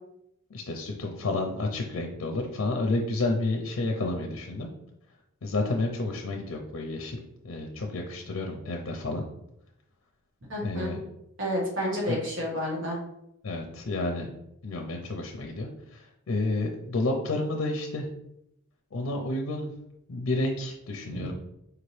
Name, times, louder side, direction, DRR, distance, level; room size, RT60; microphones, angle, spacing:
voice 1, 0.5-4.7 5.4-7.2 7.4-9.3 10.6-11.0 12.1-12.2 13.4-14.3 14.6-18.1 18.9-19.7 20.1-21.3, left 2 dB, 75° left, 2 dB, 0.5 m, -30 dB
voice 2, 10.5-10.9 11.4-13.0 21.1-21.3, equal, 65° right, -3 dB, 1.5 m, -30 dB
4.7 x 2.9 x 3.2 m, 0.81 s
head